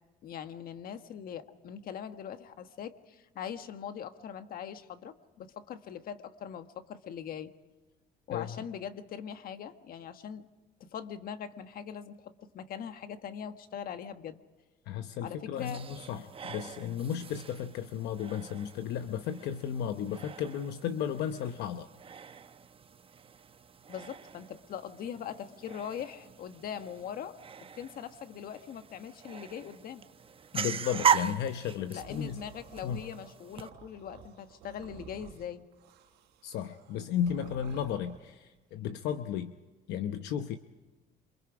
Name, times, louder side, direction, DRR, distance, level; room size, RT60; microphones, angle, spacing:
voice 1, 0.2-7.5 8.3-10.5 10.8-14.4 15.2-15.8 23.9-27.4 27.8-30.1 31.9-35.7, left 8 dB, 60° left, 9 dB, 1.5 m, -41 dB
voice 2, 8.3-8.6 14.9-21.9 30.5-32.4 32.8-33.0 36.4-39.5 39.9-40.6, left 9 dB, 80° left, 8 dB, 0.9 m, -34 dB
sound 1, 15.6-33.7, right 7 dB, 35° right, 0.9 m, -38 dB
sound 2, 32.0-38.3, right 9 dB, 90° right, 4.3 m, -52 dB
27.5 x 24.5 x 5.0 m, 1.2 s
cardioid pair, 110°, 17 cm